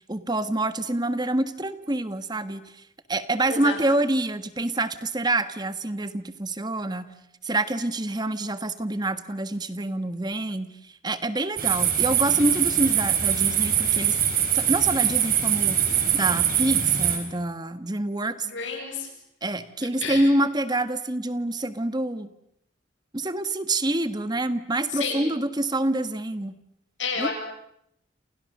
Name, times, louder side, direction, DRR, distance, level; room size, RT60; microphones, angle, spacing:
voice 1, 0.1-2.6 3.1-7.1 7.4-10.7 11.0-14.2 14.5-15.8 16.1-18.5 19.4-22.3 23.1-26.5 27.2-27.3, right 1 dB, 20° right, 11 dB, 1.4 m, -26 dB
voice 2, 3.5-3.8 18.4-19.1 20.0-20.3 24.9-25.2 27.0-27.3, left 5 dB, 75° left, 2 dB, 7.7 m, -30 dB
sound 1, 11.6-17.2, right 9 dB, 45° right, 4.8 m, -23 dB
29.5 x 29.0 x 6.6 m, 0.77 s
head